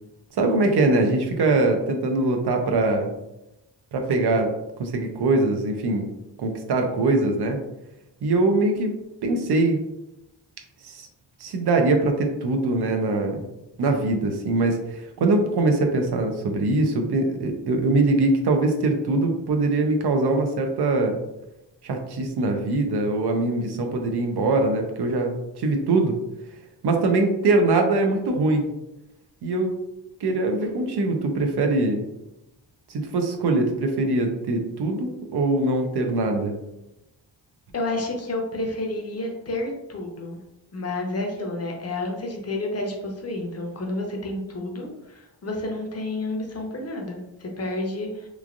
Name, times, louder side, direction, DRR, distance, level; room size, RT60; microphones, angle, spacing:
voice 1, 0.3-3.1 3.9-4.5 4.8-6.1 6.4-7.6 8.2-8.9 9.2-9.8 10.8-11.1 11.4-13.4 13.8-21.2 21.8-26.2 26.8-28.6 29.4-29.7 30.2-32.0 32.9-36.5, right 2 dB, 65° right, 4 dB, 0.6 m, -22 dB
voice 2, 37.7-40.4 40.7-48.3, left 2 dB, 35° left, 1 dB, 0.7 m, -30 dB
3.1 x 2.4 x 2.5 m, 0.90 s
cardioid pair, 90°, 44 cm